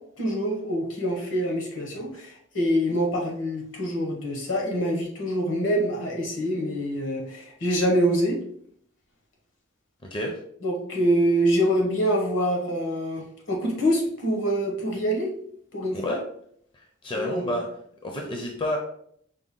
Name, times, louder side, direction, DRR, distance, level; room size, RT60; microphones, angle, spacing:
voice 1, 0.2-8.4 10.6-15.3 15.7-16.1 17.1-17.5, equal, 75° left, 0 dB, 1.2 m, -25 dB
voice 2, 10.0-10.4 15.9-16.2 16.7-17.7 18.0-18.8, left 1 dB, 25° left, 1 dB, 0.5 m, -30 dB
5.0 x 2.2 x 3.7 m, 0.66 s
head